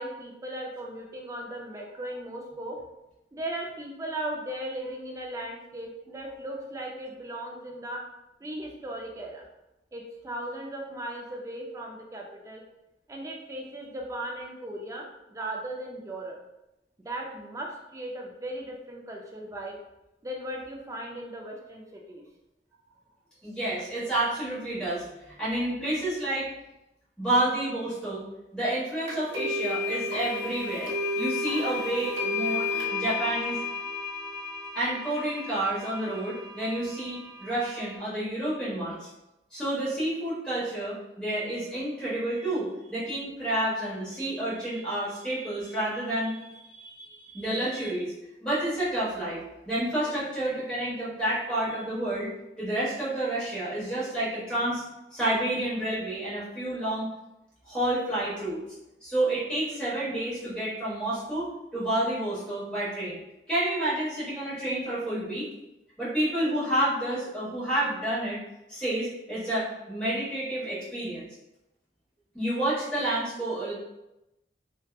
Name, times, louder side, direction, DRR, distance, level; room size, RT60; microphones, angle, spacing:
voice 1, 0.0-2.8 3.3-8.0 8.4-9.4 9.9-12.6 13.1-16.4 17.0-19.8 20.2-22.2, right 1 dB, 15° right, 0 dB, 0.3 m, -37 dB
voice 2, 23.4-26.5 27.2-28.2 28.5-33.6 34.7-39.1 39.5-48.1 48.4-49.4 49.7-52.3 52.6-54.8 55.1-57.1 57.6-58.6 59.0-63.2 63.5-65.5 66.0-68.4 68.7-71.3 72.3-73.7, right 1 dB, 5° left, -10 dB, 1.1 m, -29 dB
sound 1, 29.1-37.9, left 3 dB, 80° right, 0.6 m, -33 dB
2.8 x 2.2 x 2.2 m, 0.92 s
head